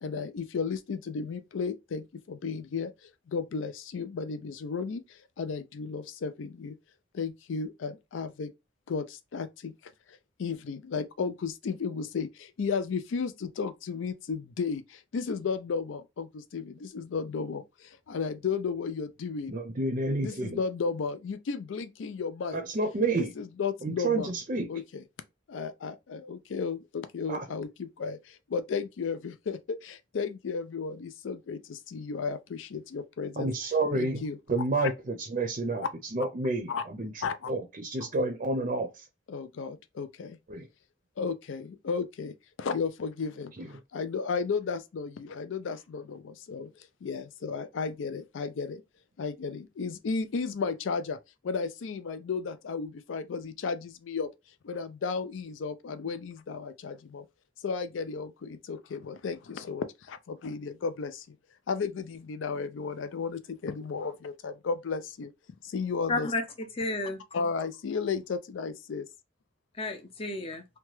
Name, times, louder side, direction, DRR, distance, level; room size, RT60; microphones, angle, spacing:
voice 1, 0.0-6.8 7.1-8.5 8.9-9.7 10.1-19.5 20.2-22.6 23.1-24.3 24.7-25.0 25.5-33.5 33.9-34.4 36.7-36.8 37.2-37.5 39.3-40.4 41.2-48.8 49.2-51.2 51.4-54.3 54.6-57.3 57.6-61.4 61.7-65.3 65.6-66.3 67.3-69.1, left 5 dB, 85° left, 0.4 m, -34 dB
voice 2, 19.5-20.6 22.5-23.3 23.8-24.7 27.3-27.4 33.4-34.2 34.5-35.9 36.1-37.1 37.5-39.1 40.5-40.7 43.6-43.7, right 2 dB, 40° right, 0.5 m, -29 dB
voice 3, 66.1-67.2 69.7-70.7, left 2 dB, 30° left, 0.6 m, -32 dB
2.9 x 2.3 x 3.0 m
head